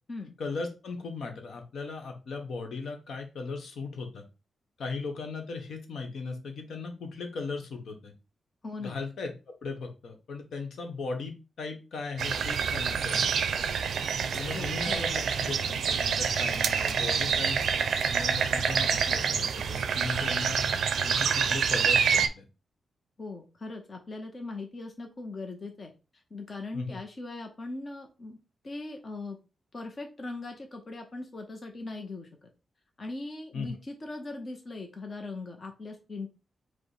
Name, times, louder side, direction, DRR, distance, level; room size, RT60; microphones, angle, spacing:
voice 1, 0.4-4.2 4.8-8.1 8.8-9.3 9.6-13.5 14.3-17.6 18.1-20.6 21.0-22.4 26.7-27.0 33.5-33.7, left 4 dB, 70° left, 4 dB, 1.0 m, -37 dB
voice 2, 8.6-9.0 14.5-15.1 23.2-25.9 26.3-28.4 28.6-29.4 29.7-32.5 33.0-36.3, left 3 dB, 30° left, 3 dB, 0.7 m, -40 dB
sound 1, 12.2-22.3, right 6 dB, 70° right, 0.4 m, -27 dB
5.1 x 2.1 x 4.7 m, 0.31 s
wide cardioid pair, 175°, 0 cm